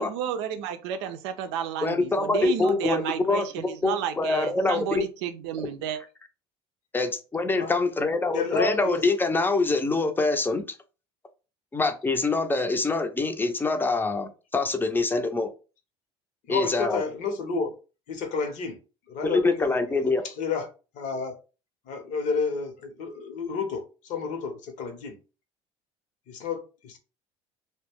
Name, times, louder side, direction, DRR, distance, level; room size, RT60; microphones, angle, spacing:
voice 1, 0.0-6.0, right 9 dB, 85° right, 0.5 m, -32 dB
voice 2, 1.8-5.1 5.6-5.7 6.9-10.6 11.7-15.5 16.5-17.0 19.2-20.2, left 3 dB, 15° left, 0.5 m, -25 dB
voice 3, 8.3-9.0 16.5-17.7 18.1-18.8 19.1-20.7 20.9-21.3 21.9-25.2 26.3-27.0, left 5 dB, 60° left, 0.8 m, -31 dB
2.3 x 2.1 x 3.4 m
supercardioid pair, 90°, 14 cm